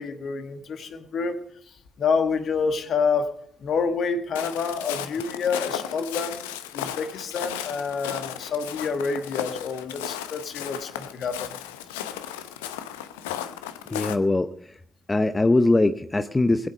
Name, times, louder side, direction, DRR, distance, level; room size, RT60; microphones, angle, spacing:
voice 1, 0.0-1.4 2.0-6.5 6.7-11.5, left 5 dB, 55° left, 8 dB, 1.5 m, -28 dB
Walk footsteps, 4.3-14.1, left 11 dB, 75° left, 0.7 m, -35 dB
voice 2, 13.9-14.8 15.1-16.7, left 2 dB, 20° left, 11 dB, 0.7 m, -22 dB
21.0 x 8.2 x 5.2 m, 0.64 s
figure-of-eight pair, 40°, 0 cm